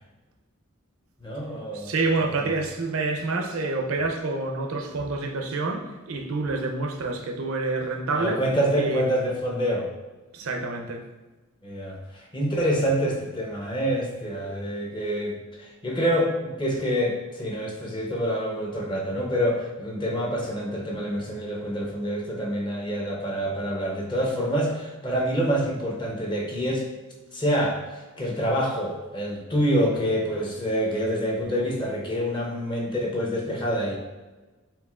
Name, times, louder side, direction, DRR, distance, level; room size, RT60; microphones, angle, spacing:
voice 1, 1.2-1.9 2.3-2.5 8.1-9.9 11.6-26.8 27.3-34.0, equal, 20° left, -1 dB, 0.6 m, -27 dB
voice 2, 1.7-8.4 8.8-9.0 10.3-11.0, right 3 dB, 80° right, 3 dB, 0.6 m, -28 dB
4.5 x 3.6 x 2.3 m, 1.2 s
head